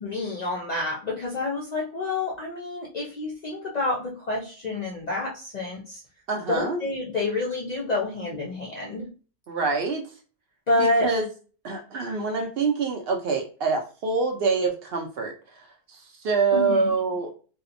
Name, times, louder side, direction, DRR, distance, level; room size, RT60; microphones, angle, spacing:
voice 1, 0.0-6.0 6.5-9.1 10.7-11.1 16.5-16.9, left 2 dB, 60° left, -3 dB, 0.4 m, -28 dB
voice 2, 6.3-6.8 9.5-10.0 10.8-11.3 11.6-15.3 15.9-17.4, right 4 dB, 65° right, 3 dB, 0.7 m, -25 dB
2.7 x 2.0 x 2.4 m, 0.38 s
omnidirectional pair, 1.2 m